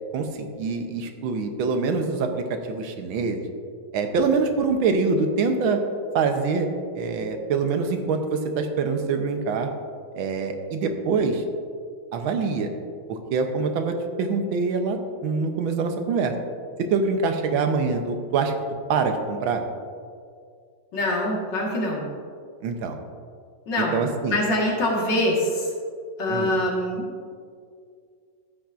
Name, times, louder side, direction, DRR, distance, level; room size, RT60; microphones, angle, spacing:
voice 1, 0.1-3.4 3.9-5.8 6.2-6.7 7.0-9.7 10.2-11.4 12.1-12.7 13.1-16.3 16.9-18.5 18.9-19.6 22.6-23.0 23.9-24.4 26.3-26.5, right 4 dB, 90° right, 5 dB, 1.6 m, -25 dB
voice 2, 20.9-22.1 23.7-24.0 24.3-25.8 26.2-27.1, left 1 dB, 65° left, -2 dB, 2.3 m, -24 dB
13.5 x 8.7 x 2.5 m, 2.2 s
omnidirectional pair, 2.1 m